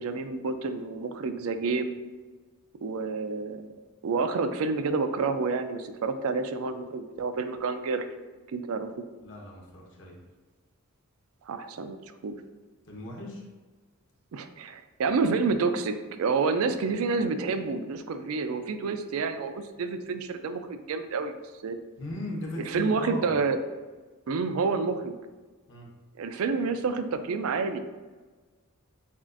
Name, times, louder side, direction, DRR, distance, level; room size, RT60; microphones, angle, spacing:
voice 1, 0.0-2.0 2.8-3.7 4.0-8.1 8.5-9.0 11.5-12.4 14.3-21.3 21.6-21.8 22.7-23.6 24.3-25.2 26.2-27.8, right 4 dB, 70° right, 9 dB, 0.4 m, -29 dB
voice 2, 9.2-10.2 12.8-13.5 22.0-23.3 25.7-25.9, left 1 dB, 55° left, -1 dB, 1.0 m, -38 dB
7.1 x 2.4 x 2.5 m, 1.3 s
head